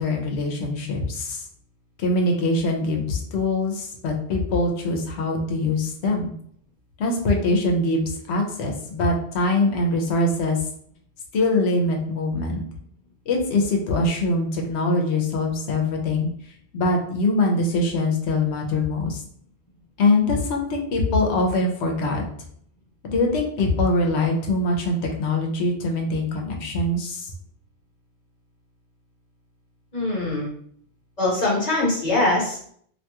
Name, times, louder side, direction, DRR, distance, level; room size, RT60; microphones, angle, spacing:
voice 1, 0.0-1.4 2.0-6.3 7.0-10.6 11.3-12.6 13.3-16.3 16.7-19.2 20.0-22.2 23.0-27.3, left 2 dB, 85° left, 1 dB, 0.9 m, -23 dB
voice 2, 29.9-30.5 31.2-32.6, left 2 dB, 40° left, -4 dB, 1.0 m, -22 dB
2.6 x 2.3 x 2.8 m, 0.63 s
omnidirectional pair, 1.1 m